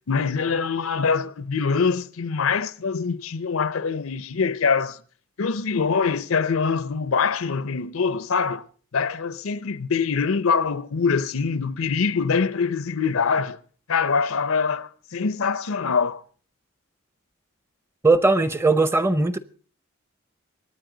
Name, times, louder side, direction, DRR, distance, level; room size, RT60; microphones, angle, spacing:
voice 1, 0.1-5.0 5.4-8.6 8.9-13.6 13.9-16.2, left 5 dB, 85° left, 0.7 m, -24 dB
voice 2, 18.0-19.4, right 3 dB, 10° right, 0.6 m, -19 dB
23.5 x 9.8 x 3.9 m
head